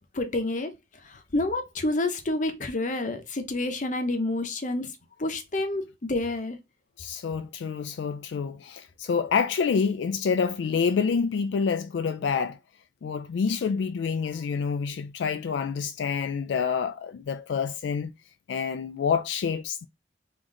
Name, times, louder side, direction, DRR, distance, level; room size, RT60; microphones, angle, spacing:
voice 1, 0.1-0.7 1.0-4.9 5.2-6.6, left 2 dB, 45° left, 0.8 m, -28 dB
voice 2, 7.0-12.6 13.0-18.1 18.5-19.9, left 6 dB, 80° left, 0.3 m, -27 dB
3.9 x 3.0 x 3.7 m
head